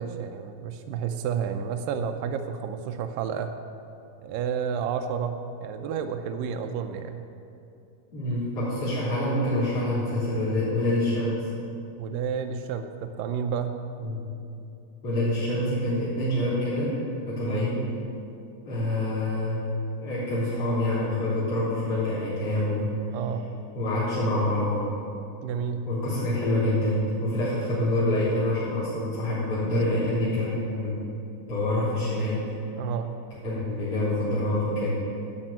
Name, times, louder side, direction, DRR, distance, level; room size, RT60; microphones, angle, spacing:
voice 1, 0.0-3.5 4.2-7.3 12.0-13.8 17.4-17.6 23.1-23.5 25.4-25.9 32.8-33.1, right 7 dB, 85° right, 7 dB, 2.3 m, -30 dB
voice 2, 8.1-11.5 14.0-14.2 15.0-17.0 17.3-17.9 18.6-19.7 20.0-22.9 23.7-24.9 25.9-30.9 31.5-32.5 33.4-34.9, left 1 dB, 45° left, -12 dB, 4.4 m, -26 dB
12.0 x 7.1 x 8.8 m, 2.7 s
omnidirectional pair, 3.9 m